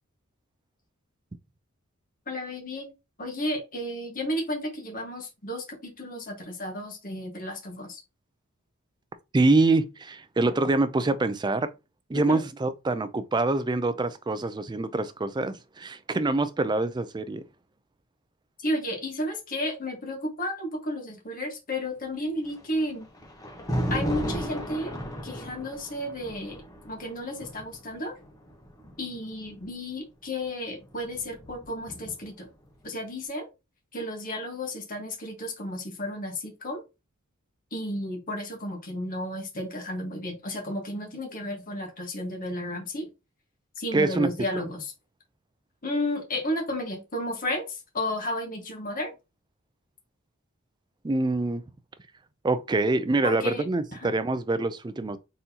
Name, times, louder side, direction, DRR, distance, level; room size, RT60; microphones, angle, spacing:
voice 1, 2.3-2.9 3.2-8.0 12.1-12.4 18.6-23.1 23.9-24.9 25.2-28.1 29.0-32.5 32.8-33.5 33.9-36.8 37.7-43.1 43.8-44.9 45.8-49.1 53.2-53.6 54.0-54.1, left 1 dB, 40° left, 1.4 m, -32 dB
voice 2, 9.3-11.7 12.1-17.4 43.9-44.3 51.0-51.6 52.4-55.2, right 2 dB, 20° right, 0.4 m, -25 dB
Thunder, 22.5-29.7 30.7-32.5, equal, 15° left, 0.9 m, -35 dB
4.1 x 3.8 x 2.8 m
head